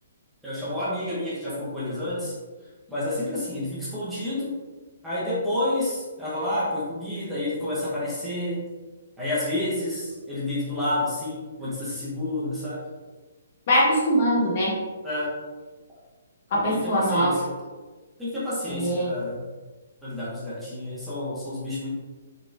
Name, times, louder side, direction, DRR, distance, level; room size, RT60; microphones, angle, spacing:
voice 1, 0.4-2.3 2.9-4.6 5.0-8.7 9.2-12.9 15.0-15.3 16.7-17.5 18.2-19.4 20.0-21.9, left 1 dB, 5° right, -10 dB, 0.7 m, -29 dB
voice 2, 13.7-14.7 16.5-17.3 18.7-19.1, equal, 30° left, -5 dB, 1.0 m, -22 dB
4.0 x 2.9 x 2.5 m, 1.3 s
hypercardioid pair, 180°, 0 cm